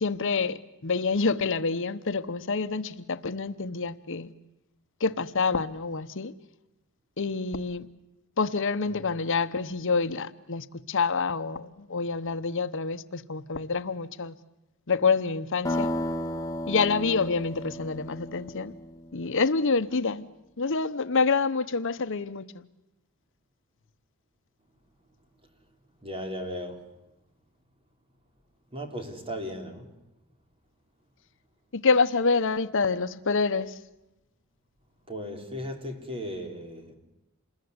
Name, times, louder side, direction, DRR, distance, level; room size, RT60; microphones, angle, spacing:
voice 1, 0.0-4.3 5.0-6.3 7.2-7.9 8.4-14.4 14.9-15.9 16.7-18.7 19.1-20.3 20.6-22.7 31.7-33.8, left 4 dB, 60° left, 0.9 m, -27 dB
sound 1, 15.6-19.4, left 1 dB, 15° left, 1.4 m, -33 dB
voice 2, 26.0-26.8 28.7-29.9 35.1-37.0, equal, 25° right, 3.9 m, -36 dB
27.5 x 21.5 x 9.6 m
head